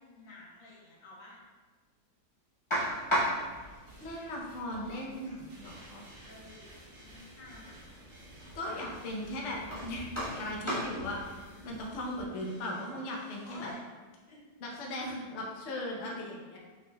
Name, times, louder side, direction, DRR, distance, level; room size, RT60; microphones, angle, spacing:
voice 1, 0.0-1.4 6.2-7.8 8.7-8.8 9.1-9.2 13.5-13.9 14.3-14.4, left 1 dB, 85° left, -6 dB, 1.9 m, -52 dB
sound 1, 2.7-12.2, equal, 20° left, 1.1 m, -38 dB
sound 2, 3.5-13.7, right 1 dB, 80° right, 2.4 m, -57 dB
voice 2, 4.0-6.0 8.5-10.1 10.3-13.7 14.6-16.6, left 1 dB, 55° left, -2 dB, 0.8 m, -38 dB
5.5 x 3.9 x 2.2 m, 1.4 s
omnidirectional pair, 2.0 m